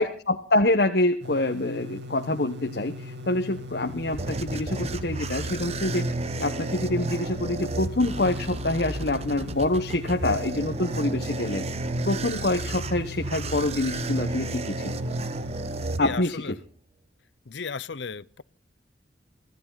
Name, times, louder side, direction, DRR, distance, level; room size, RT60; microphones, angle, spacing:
voice 1, 0.0-6.1 6.4-11.7 12.0-15.0 16.0-16.5, left 2 dB, 60° left, 1.2 m, -26 dB
sound 1, 1.2-16.0, left 2 dB, 75° right, 2.4 m, -39 dB
sound 2, 3.6-16.6, right 2 dB, 35° right, 1.0 m, -32 dB
voice 2, 16.0-16.5 17.5-18.4, left 5 dB, 75° left, 0.7 m, -35 dB
24.5 x 14.5 x 4.1 m
head